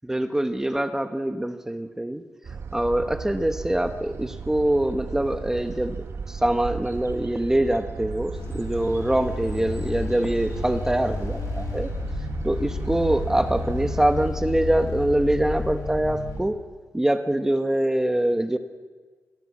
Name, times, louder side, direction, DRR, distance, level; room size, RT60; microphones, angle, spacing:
voice 1, 0.0-2.2 2.7-11.9 12.4-16.6 16.9-18.6, right 1 dB, 10° right, 8 dB, 0.9 m, -24 dB
sound 1, 2.4-14.3, right 5 dB, 55° right, 1.2 m, -36 dB
sound 2, 8.3-16.4, left 2 dB, 85° left, 6.2 m, -32 dB
27.0 x 18.0 x 8.4 m, 1.6 s
wide cardioid pair, 135°, 5 cm